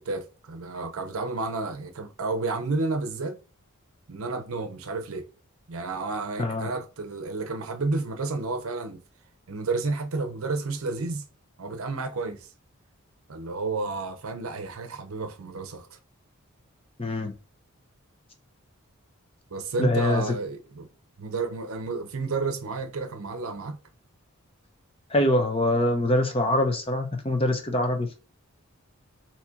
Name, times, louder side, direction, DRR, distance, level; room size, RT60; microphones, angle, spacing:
voice 1, 0.0-3.4 4.1-5.3 5.7-9.0 9.5-11.3 11.6-12.5 13.3-16.0 19.5-20.9 21.2-23.8, right 3 dB, 70° right, 0.7 m, -31 dB
voice 2, 17.0-17.3 19.8-20.2 25.1-28.2, left 1 dB, 25° left, 0.7 m, -24 dB
4.2 x 2.8 x 2.3 m
head